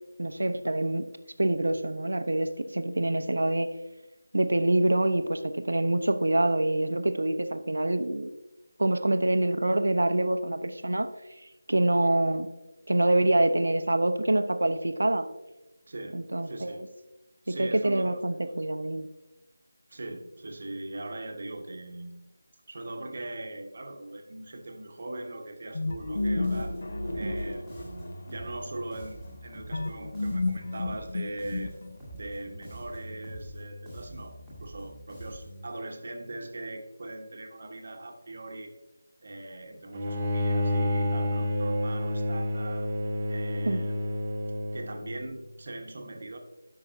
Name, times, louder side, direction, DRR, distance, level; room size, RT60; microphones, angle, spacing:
voice 1, 0.2-1.1 1.4-3.7 4.3-8.3 8.8-11.1 11.7-12.5 12.9-15.3 16.1-16.9 17.5-19.1 27.2-27.4 43.6-43.8, right 1 dB, 60° right, 9 dB, 0.7 m, -26 dB
voice 2, 15.9-16.8 17.4-18.2 19.9-22.1 22.7-26.7 27.1-31.7 32.2-38.7 39.2-42.9 43.3-43.9 44.7-46.4, right 2 dB, 40° right, 4 dB, 1.1 m, -40 dB
sound 1, 25.7-28.3 29.7-32.2, left 2 dB, 45° left, 0.9 m, -31 dB
Bass guitar, 25.8-26.2 26.4-31.1 31.4-35.7, equal, 5° left, 1.9 m, -44 dB
Bowed string instrument, 39.9-45.1, left 1 dB, 20° right, 1.0 m, -29 dB
13.0 x 5.8 x 2.6 m, 0.99 s
figure-of-eight pair, 160°, 0 cm